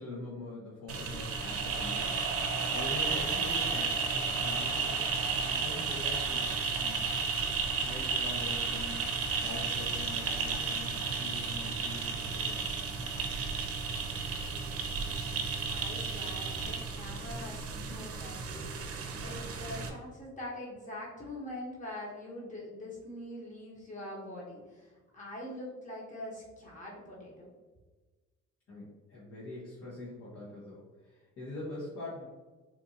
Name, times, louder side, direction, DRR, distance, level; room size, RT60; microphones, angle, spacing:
voice 1, 0.0-2.3 2.7-5.1 5.4-7.1 7.8-9.0 9.4-12.8 28.7-32.3, left 2 dB, 60° left, -8 dB, 1.2 m, -44 dB
sound 1, 0.9-19.9, right 4 dB, 50° right, 0.7 m, -33 dB
voice 2, 15.7-27.5, left 1 dB, 25° left, -5 dB, 1.3 m, -44 dB
4.3 x 2.6 x 2.8 m, 1.3 s
cardioid pair, 90°, 30 cm